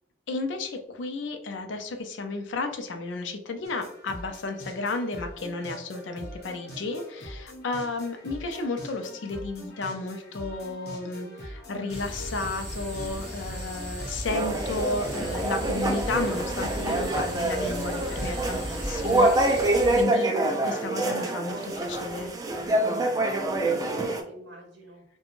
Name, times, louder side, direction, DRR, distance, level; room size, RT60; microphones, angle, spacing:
voice 1, 0.3-20.3 20.6-22.3, left 3 dB, 85° left, 6 dB, 0.5 m, -33 dB
sound 1, 3.6-18.6, equal, 55° left, 0.9 m, -43 dB
sound 2, 11.9-20.0, equal, 5° left, 1.2 m, -36 dB
sound 3, 14.3-24.2, right 2 dB, 20° right, 0.3 m, -26 dB
voice 2, 20.9-23.2 23.5-25.0, equal, 75° right, -1 dB, 0.7 m, -42 dB
3.0 x 2.2 x 2.4 m, 0.75 s
head